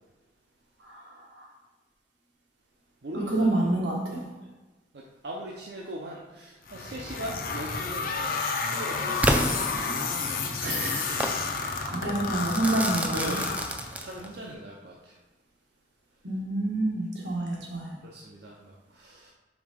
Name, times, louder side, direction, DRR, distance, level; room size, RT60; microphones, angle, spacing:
voice 1, 0.8-1.5 3.1-4.3 10.6-11.3 11.6-13.4 16.2-18.0, right 2 dB, 85° right, -2 dB, 1.5 m, -29 dB
voice 2, 3.0-3.3 4.9-9.8 13.1-15.1 18.0-19.3, right 1 dB, 65° right, -2 dB, 0.7 m, -40 dB
sound 1, 6.7-14.2, left 4 dB, 50° left, 0.6 m, -31 dB
Crackle / Fireworks, 9.2-10.4 11.2-11.4 12.4-14.4, right 1 dB, 10° right, 0.4 m, -29 dB
5.1 x 3.7 x 5.2 m, 1.2 s
head